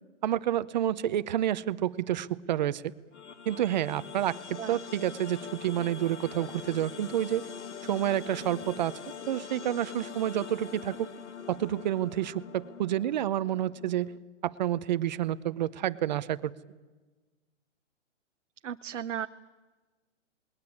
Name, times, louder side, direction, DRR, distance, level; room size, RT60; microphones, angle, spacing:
voice 1, 0.2-2.9 3.5-7.5 7.8-9.0 9.3-11.1 11.5-14.1 14.4-16.5, right 12 dB, 40° right, 15 dB, 0.8 m, -29 dB
sound 1, 3.1-14.2, left 7 dB, 70° left, 2.0 m, -43 dB
voice 2, 18.6-19.3, right 9 dB, 85° right, 8 dB, 0.9 m, -35 dB
27.5 x 21.0 x 8.6 m, 1.3 s
hypercardioid pair, 160°, 36 cm